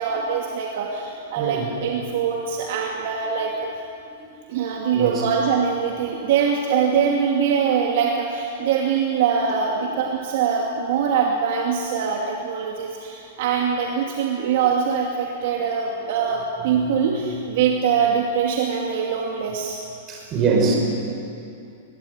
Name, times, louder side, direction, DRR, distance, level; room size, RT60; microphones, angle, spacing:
voice 1, 0.0-3.7 4.5-19.8, right 7 dB, 50° right, -1 dB, 2.6 m, -23 dB
voice 2, 1.3-1.7 4.3-4.4 4.9-5.2 16.7-17.0 20.1-20.8, right 4 dB, 20° right, -1 dB, 5.6 m, -24 dB
22.0 x 22.0 x 9.8 m, 2.6 s
supercardioid pair, 175°, 0 cm